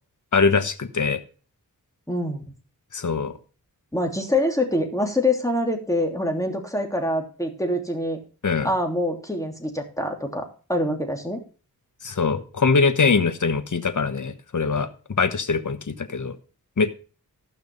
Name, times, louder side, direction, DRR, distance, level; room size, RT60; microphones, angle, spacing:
voice 1, 0.3-1.2 2.9-3.3 8.4-8.7 12.0-14.9 15.2-16.3 16.8-16.9, left 4 dB, 55° left, 10 dB, 1.3 m, -22 dB
voice 2, 2.1-2.4 3.9-8.2 8.6-10.4 10.7-11.4, left 1 dB, 10° left, 3 dB, 2.9 m, -25 dB
14.5 x 5.9 x 5.3 m, 0.37 s
wide cardioid pair, 55°, 36 cm